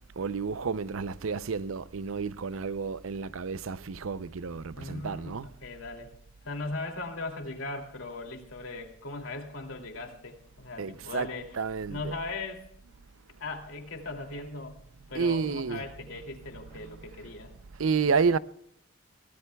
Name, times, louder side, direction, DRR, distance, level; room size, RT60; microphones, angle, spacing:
voice 1, 0.2-5.5 10.8-11.3 11.5-12.1 15.1-15.8 17.8-18.4, right 5 dB, 80° right, 0.6 m, -30 dB
voice 2, 4.7-6.1 6.4-11.5 11.9-12.6 13.4-14.8 15.1-17.5, left 3 dB, 80° left, 2.7 m, -38 dB
23.5 x 17.5 x 2.3 m
head